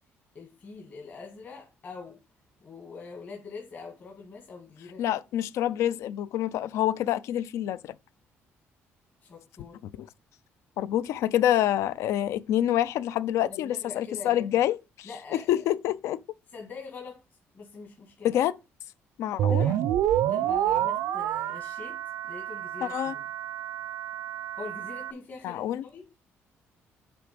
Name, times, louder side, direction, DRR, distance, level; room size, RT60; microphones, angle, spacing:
voice 1, 0.3-2.2 2.6-5.0 9.2-9.8 13.5-14.6 15.0-15.7 16.5-17.2 17.5-18.4 19.5-19.8 20.3-22.0 22.2-23.3 24.5-26.1, left 4 dB, 35° left, 1.5 m, -43 dB
voice 2, 5.0-7.9 9.8-10.1 10.8-14.8 15.3-16.2 18.2-18.5 19.2-19.7 22.8-23.1 25.4-25.9, left 12 dB, 75° left, 0.4 m, -27 dB
sound 1, 19.4-25.1, right 11 dB, 75° right, 0.4 m, -28 dB
8.3 x 3.4 x 5.0 m
cardioid pair, 155°, 5 cm